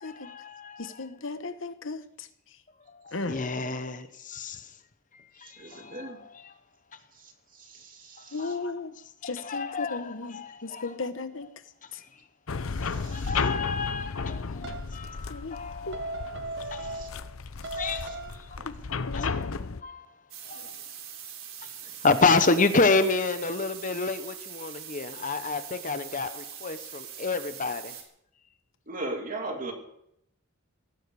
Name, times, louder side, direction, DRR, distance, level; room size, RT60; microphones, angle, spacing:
voice 1, 0.0-1.1 2.9-4.6 5.4-6.5 8.4-8.7 9.2-11.0 13.1-17.0 17.8-18.2 19.2-19.5 19.8-20.0 20.5-20.8 22.0-28.0, left 3 dB, 40° left, 1.0 m, -29 dB
voice 2, 0.8-2.0 3.1-3.4 8.3-8.9 9.2-11.5 13.4-13.6 15.3-15.6 15.9-16.0 18.7-18.8 19.1-19.4, left 3 dB, 65° left, 1.1 m, -35 dB
voice 3, 5.6-6.2 7.6-8.5 12.8-13.4 16.9-17.1 17.7-18.1 18.6-18.7 20.6-20.7 28.9-29.7, right 2 dB, 40° right, 2.9 m, -39 dB
sound 1, 12.5-19.8, left 4 dB, 90° left, 0.8 m, -34 dB
sound 2, 14.6-15.0 15.9-17.3 17.6-18.5, right 2 dB, 55° right, 1.3 m, -37 dB
sound 3, 20.3-28.0, right 9 dB, 85° right, 3.7 m, -42 dB
17.5 x 16.5 x 4.9 m
head